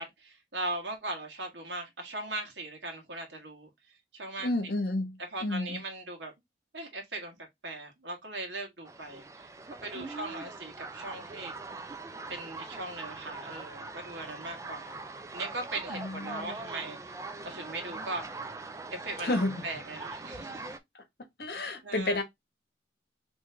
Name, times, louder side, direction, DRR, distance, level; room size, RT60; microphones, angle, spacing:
voice 1, 0.0-3.7 4.1-4.5 5.3-6.3 6.7-7.4 7.6-9.5 9.8-11.5 12.3-15.0 15.3-17.1 17.4-18.3 18.9-19.4 19.6-20.7 21.8-22.2, right 2 dB, 85° right, 1.5 m, -39 dB
voice 2, 4.4-5.8 9.9-10.4 15.9-16.6 19.2-19.6 20.9-21.0 21.4-22.2, left 2 dB, 60° left, 1.1 m, -32 dB
sound 1, 8.9-20.8, right 3 dB, 15° right, 0.4 m, -42 dB
3.8 x 3.1 x 3.3 m
head